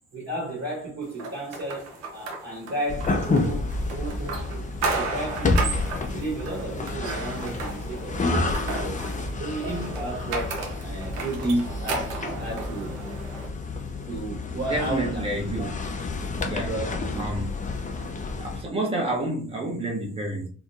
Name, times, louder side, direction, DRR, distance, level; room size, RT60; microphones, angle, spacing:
voice 1, 0.1-4.7 4.9-9.0 9.3-12.1 12.4-13.0 14.1-15.7 16.4-17.2, right 1 dB, 45° right, 1.3 m, -33 dB
sound 1, 1.2-13.5, right 3 dB, 85° right, 0.6 m, -34 dB
sound 2, 2.9-18.6, left 3 dB, 25° left, 0.6 m, -30 dB
voice 2, 14.7-15.7 16.5-16.7 17.2-17.5 18.4-20.5, right 1 dB, 15° right, 0.9 m, -29 dB
2.9 x 2.1 x 2.6 m
hypercardioid pair, 50°, 33 cm